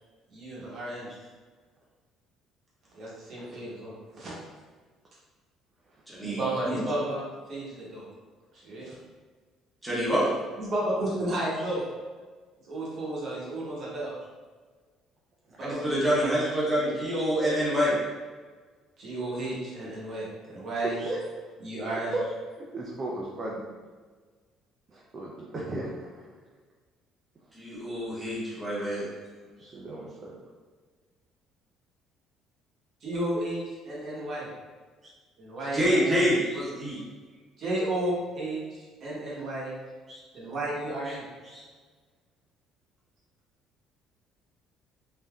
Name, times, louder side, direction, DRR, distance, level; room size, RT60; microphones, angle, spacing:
voice 1, 0.3-1.1 2.9-4.3 6.2-8.0 8.5-8.9 10.6-11.8 12.7-14.1 15.6-16.3 19.0-20.9 21.6-22.1 33.0-33.6 33.8-34.5 35.4-36.3 37.6-39.7 40.3-41.2, right 1 dB, 40° right, -6 dB, 0.8 m, -32 dB
voice 2, 6.1-6.4 6.6-6.7 9.8-10.2 15.6-17.9 27.5-29.0 35.7-37.0, equal, 5° right, -9 dB, 0.8 m, -26 dB
voice 3, 20.8-21.5 22.1-23.6 24.9-26.3 29.5-30.3 35.0-35.1 35.6-35.7 36.5-37.0 40.1-40.2 41.0-41.2 41.4-41.6, right 2 dB, 25° right, -4 dB, 0.3 m, -37 dB
3.4 x 2.6 x 2.2 m, 1.4 s
cardioid pair, 180°, 0 cm